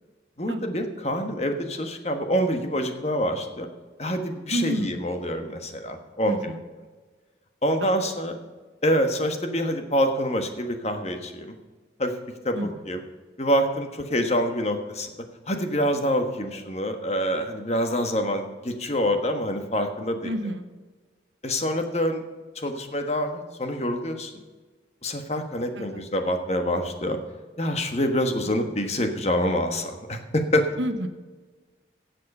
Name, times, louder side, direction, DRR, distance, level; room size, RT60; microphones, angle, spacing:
voice 1, 0.4-3.7 4.0-6.5 7.6-8.4 8.8-11.5 12.0-12.1 12.4-13.0 13.4-15.1 15.5-20.3 21.4-22.2 22.5-24.3 25.0-27.2 27.6-30.7, equal, 35° left, 6 dB, 1.3 m, -26 dB
voice 2, 4.5-5.0 6.3-6.6 7.8-8.0 12.5-12.7 20.2-20.7 25.8-26.0 30.8-31.1, right 1 dB, 85° right, 8 dB, 1.2 m, -29 dB
16.0 x 7.6 x 5.4 m, 1.3 s
head